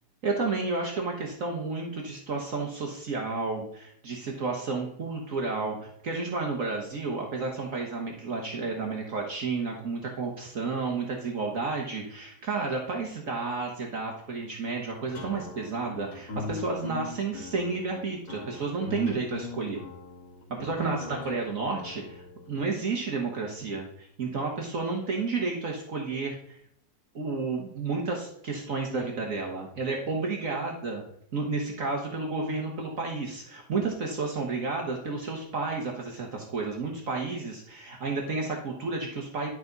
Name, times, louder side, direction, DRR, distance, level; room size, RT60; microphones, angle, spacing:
voice 1, 0.2-19.8 20.5-26.6 27.1-31.0 31.3-39.5, right 3 dB, 55° right, 0 dB, 1.6 m, -31 dB
sound 1, 15.1-22.6, left 4 dB, 70° left, 3.5 m, -40 dB
11.5 x 5.9 x 3.9 m, 0.68 s
omnidirectional pair, 1.7 m